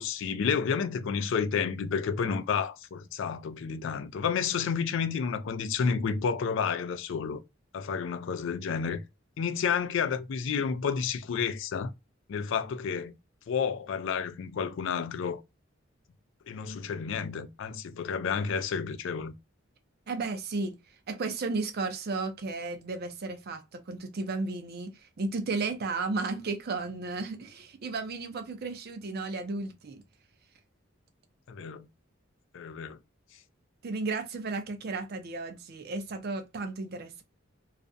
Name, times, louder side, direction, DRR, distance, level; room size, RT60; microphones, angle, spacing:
voice 1, 0.0-7.4 7.7-9.0 9.4-11.9 12.3-13.2 13.5-15.4 16.5-19.3 31.5-31.9 32.5-33.0, left 6 dB, 65° left, 0.3 m, -30 dB
voice 2, 20.1-20.8 21.1-30.0 33.8-37.2, right 3 dB, 50° right, 0.5 m, -34 dB
2.4 x 2.1 x 2.5 m
head